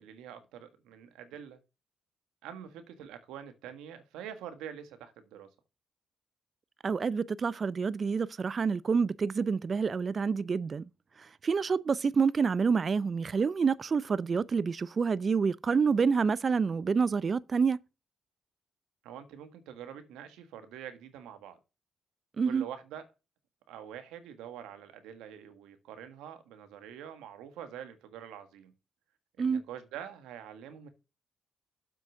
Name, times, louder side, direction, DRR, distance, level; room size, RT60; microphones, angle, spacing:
voice 1, 0.0-1.6 2.4-5.5 19.0-21.6 22.4-23.0 23.7-28.7 29.4-30.9, right 9 dB, 90° right, 1.5 m, -45 dB
voice 2, 6.8-10.9 11.2-17.8 22.4-22.7 29.4-29.6, right 5 dB, 50° right, 0.4 m, -28 dB
7.8 x 6.2 x 6.2 m
supercardioid pair, 55°, 0 cm